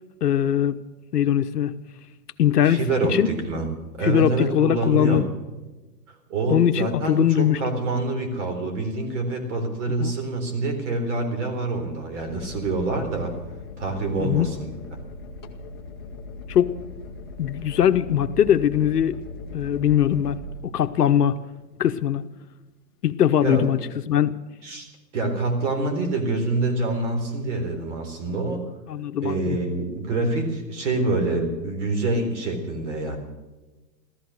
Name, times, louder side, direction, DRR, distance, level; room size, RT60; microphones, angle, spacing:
voice 1, 0.2-0.8 1.1-1.7 2.4-2.8 3.1-3.3 4.0-5.3 6.5-7.6 10.0-10.1 14.2-14.5 16.5-16.7 17.4-19.2 19.5-20.4 20.6-21.4 21.8-22.2 23.0-23.8 24.1-24.3 28.9-29.6, left 10 dB, 65° left, 10 dB, 1.0 m, -21 dB
voice 2, 2.6-3.7 3.9-5.2 6.1-13.3 13.8-14.7 23.4-23.7 24.6-24.9 25.1-28.6 29.2-33.2, right 2 dB, 45° right, 5 dB, 4.0 m, -26 dB
sound 1, 12.2-21.4 23.4-23.7, left 3 dB, 15° left, 0.6 m, -39 dB
14.5 x 14.5 x 6.6 m, 1.1 s
hypercardioid pair, 160°, 50 cm